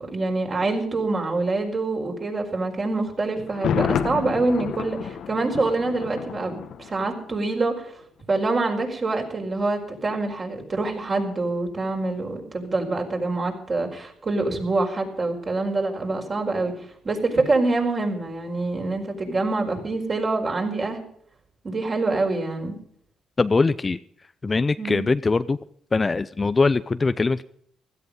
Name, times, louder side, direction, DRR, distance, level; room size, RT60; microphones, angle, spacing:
voice 1, 0.1-7.9 8.3-21.0 21.6-22.8 24.8-25.1, right 3 dB, 35° right, 2 dB, 4.8 m, -25 dB
Thunder, 3.5-7.4 7.7-7.8, left 8 dB, 70° left, 1.2 m, -29 dB
voice 2, 23.4-24.0 24.4-25.6 25.9-27.4, left 3 dB, 25° left, 14 dB, 0.5 m, -21 dB
16.5 x 13.5 x 5.4 m, 0.66 s
cardioid pair, 90°, 0 cm